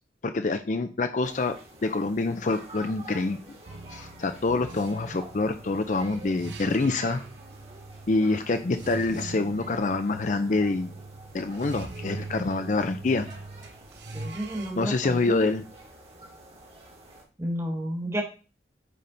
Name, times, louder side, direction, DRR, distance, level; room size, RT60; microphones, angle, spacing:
voice 1, 0.2-1.5 1.8-3.4 3.9-7.2 8.1-10.9 11.3-13.3 14.8-15.6, left 3 dB, 45° left, 8 dB, 0.5 m, -26 dB
sound 1, 1.2-17.2, right 2 dB, 35° right, 1.5 m, -48 dB
sound 2, 3.7-14.7, right 3 dB, 75° right, 0.8 m, -42 dB
voice 2, 14.1-15.4 17.4-18.2, equal, 15° right, 1 dB, 1.4 m, -31 dB
8.5 x 3.6 x 3.9 m, 0.34 s
head